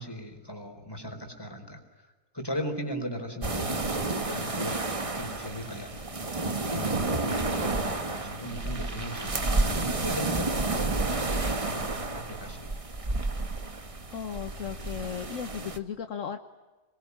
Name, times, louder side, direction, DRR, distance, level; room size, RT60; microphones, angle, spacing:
voice 1, 0.0-1.8 2.3-6.1 6.4-12.7, equal, 15° left, 4 dB, 4.4 m, -38 dB
sound 1, 3.4-15.8, right 3 dB, 25° right, 1.2 m, -30 dB
voice 2, 14.1-16.4, left 8 dB, 55° left, 7 dB, 1.4 m, -36 dB
27.0 x 22.0 x 9.7 m, 1.3 s
omnidirectional pair, 1.6 m